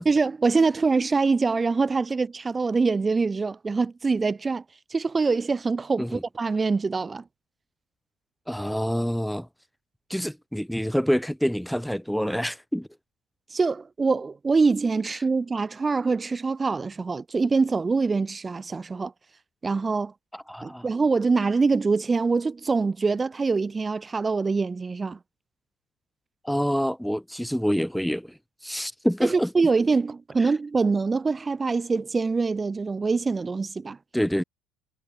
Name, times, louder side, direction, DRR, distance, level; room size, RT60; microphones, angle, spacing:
voice 1, 0.0-4.6 4.9-7.2 13.5-19.1 19.6-20.1 20.6-25.2 29.2-34.0, right 4 dB, 25° right, 1.4 m, -24 dB
voice 2, 8.5-9.5 10.1-12.9 20.3-20.9 26.4-28.3 28.6-29.5 34.1-34.4, equal, ahead, 2.9 m, -26 dB
hypercardioid pair, 65°, 0 cm